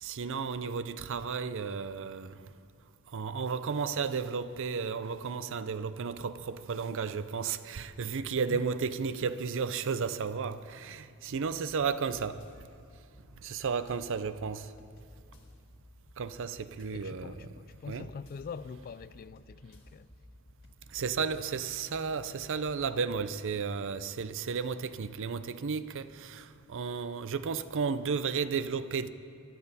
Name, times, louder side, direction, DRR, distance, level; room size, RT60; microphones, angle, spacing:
voice 1, 0.0-2.3 3.1-12.4 13.4-14.7 16.2-17.5 17.9-18.1 20.9-29.1, right 5 dB, 60° right, 0.5 m, -33 dB
sound 1, 11.3-23.0, left 1 dB, 60° left, 1.8 m, -56 dB
voice 2, 16.9-20.1, left 5 dB, 40° left, 0.3 m, -44 dB
20.5 x 12.5 x 4.1 m
head